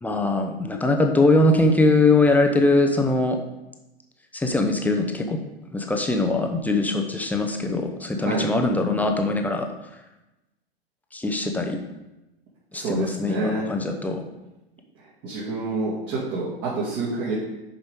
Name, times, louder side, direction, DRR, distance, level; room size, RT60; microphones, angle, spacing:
voice 1, 0.0-3.4 4.3-5.4 5.7-9.7 11.1-11.8 12.7-14.3, left 2 dB, 5° left, 3 dB, 0.8 m, -21 dB
voice 2, 8.2-8.5 12.7-13.7 15.2-17.3, right 3 dB, 45° right, -8 dB, 2.6 m, -28 dB
10.5 x 5.2 x 3.7 m, 0.99 s
hypercardioid pair, 105°, 31 cm